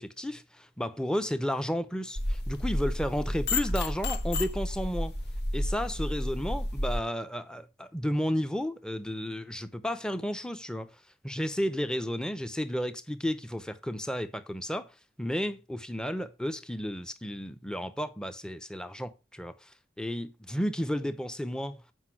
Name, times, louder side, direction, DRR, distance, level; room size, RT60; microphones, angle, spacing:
voice 1, 0.0-5.1 5.5-10.9 11.2-14.9 15.2-19.7 20.0-21.8, equal, 5° left, 0.6 m, -32 dB
sound 1, 2.2-7.0, left 1 dB, 70° left, 1.2 m, -31 dB
8.1 x 5.2 x 6.0 m
head